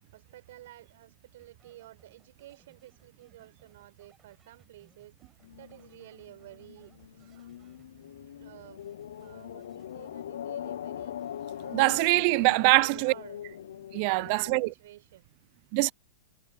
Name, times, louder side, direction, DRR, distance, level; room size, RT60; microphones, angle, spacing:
voice 1, 0.1-5.1 5.6-6.9 8.4-8.8 9.2-11.1 11.6-12.1 12.5-13.4 13.9-15.3, right 14 dB, 65° right, 5.0 m, -51 dB
sound 1, 1.4-8.2 8.6-10.6 11.0-13.0, right 6 dB, 15° right, 5.5 m, -67 dB
sound 2, 5.4-14.7, left 10 dB, 80° left, 0.3 m, -42 dB
voice 2, 11.7-13.1 13.9-14.7 15.7-15.9, right 31 dB, 45° right, 0.3 m, -23 dB
hypercardioid pair, 145°, 0 cm